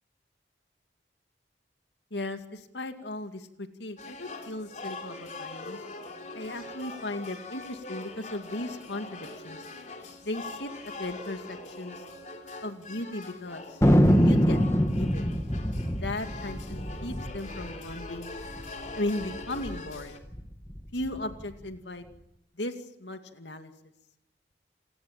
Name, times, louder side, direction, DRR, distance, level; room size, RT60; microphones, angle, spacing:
voice 1, 2.1-5.8 6.3-9.7 10.2-12.0 12.6-13.8 14.2-15.3 15.9-18.4 18.9-20.2 20.9-22.1 22.5-23.7, left 1 dB, 80° left, 7 dB, 2.3 m, -37 dB
sound 1, 4.0-20.2, left 2 dB, 40° left, 3.4 m, -42 dB
Thunder, 13.8-18.6 18.9-19.0 19.2-19.7 20.2-21.4, equal, 15° left, 1.8 m, -24 dB
29.0 x 19.0 x 9.0 m, 0.81 s
head